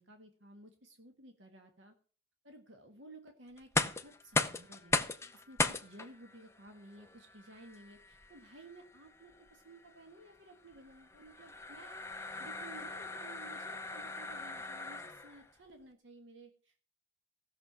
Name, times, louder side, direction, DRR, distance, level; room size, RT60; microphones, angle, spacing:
voice 1, 0.0-1.9 2.4-16.7, right 2 dB, 80° right, 5 dB, 1.5 m, -55 dB
sound 1, 3.6-15.5, left 3 dB, 15° left, 0.7 m, -38 dB
16.5 x 6.7 x 6.0 m, 0.41 s
head